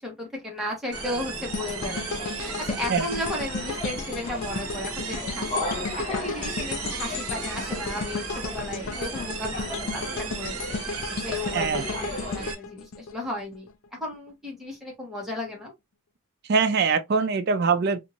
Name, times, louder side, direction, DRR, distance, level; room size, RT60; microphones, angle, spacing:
voice 1, 0.0-2.1 2.3-10.8 11.2-15.7, left 1 dB, ahead, 1.1 m, -35 dB
sound 1, 0.9-12.5, left 2 dB, 25° left, 0.9 m, -36 dB
sound 2, 0.9-12.5, right 7 dB, 75° right, 0.7 m, -37 dB
sound 3, 1.5-13.7 14.1-14.3, left 4 dB, 65° left, 0.4 m, -34 dB
voice 2, 11.5-11.8 16.5-18.0, right 5 dB, 45° right, 0.3 m, -23 dB
2.7 x 2.6 x 2.8 m
head